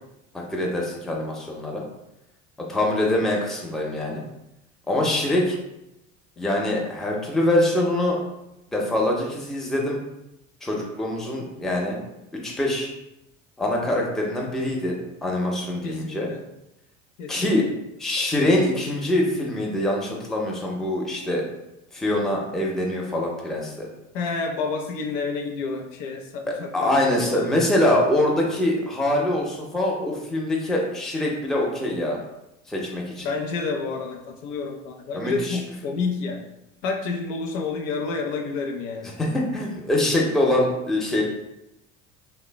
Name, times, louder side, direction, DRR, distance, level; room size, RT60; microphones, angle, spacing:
voice 1, 0.5-1.8 2.7-4.2 4.9-5.6 6.4-8.2 8.7-10.0 10.6-12.0 12.3-12.9 13.6-16.3 17.3-17.6 18.0-21.4 21.9-23.9 26.7-32.2 32.7-33.3 35.1-35.6 39.2-41.2, left 1 dB, ahead, -2 dB, 0.4 m, -24 dB
voice 2, 15.8-16.4 17.2-17.6 24.1-27.6 33.2-36.5 36.8-39.1, left 4 dB, 75° left, 3 dB, 0.5 m, -29 dB
3.1 x 2.1 x 2.2 m, 0.88 s
hypercardioid pair, 70°, 39 cm